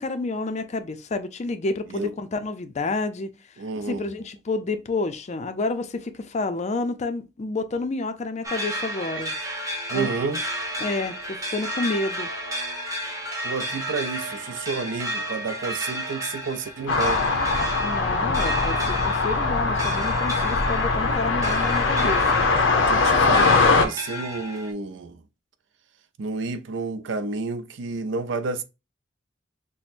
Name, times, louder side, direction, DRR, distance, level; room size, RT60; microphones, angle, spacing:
voice 1, 0.0-3.3 3.8-9.4 9.9-10.1 10.8-12.3 17.8-22.4, left 3 dB, 40° left, 0.4 m, -29 dB
voice 2, 3.6-4.1 9.0-9.2 9.9-10.4 13.4-17.2 22.9-25.2 26.2-28.6, right 4 dB, 75° right, 0.5 m, -30 dB
sound 1, 8.4-24.7, equal, 15° right, 0.9 m, -33 dB
sound 2, 16.9-23.9, left 3 dB, 90° left, 0.7 m, -21 dB
5.9 x 2.1 x 2.5 m
head